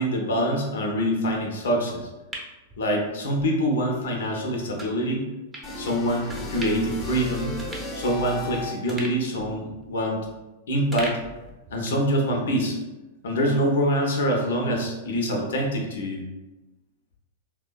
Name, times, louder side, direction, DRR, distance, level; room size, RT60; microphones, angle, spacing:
voice 1, 0.0-2.1 2.8-5.2 5.8-7.5 7.9-10.2 10.7-11.2 11.7-12.8 13.2-16.2, equal, 70° left, 1 dB, 0.6 m, -25 dB
sound 1, 1.9-3.5 3.9-4.0 4.8-5.0 5.5-5.7 6.3-7.0 7.3-7.4 7.6-8.5 8.9-10.5 10.9-12.1 12.4-12.5, right 1 dB, 15° right, 0.7 m, -40 dB
sound 2, 5.6-9.0, left 2 dB, 25° left, 0.6 m, -35 dB
3.2 x 2.1 x 2.3 m, 1.1 s
hypercardioid pair, 105°, 0 cm